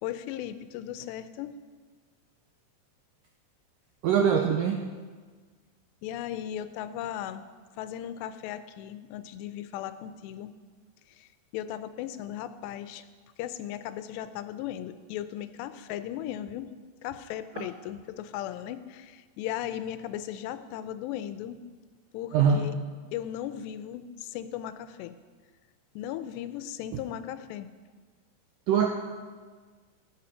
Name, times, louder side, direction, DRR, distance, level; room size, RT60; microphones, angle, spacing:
voice 1, 0.0-1.6 6.0-7.4 7.8-10.5 11.1-13.1 13.4-16.7 17.0-21.6 22.1-22.7 23.1-25.2 26.0-27.7, left 11 dB, 85° left, 12 dB, 2.8 m, -37 dB
voice 2, 4.0-4.8 17.6-17.7 22.3-22.6 28.7-28.9, right 7 dB, 85° right, 2 dB, 1.9 m, -23 dB
14.5 x 9.6 x 5.7 m, 1.5 s
omnidirectional pair, 4.9 m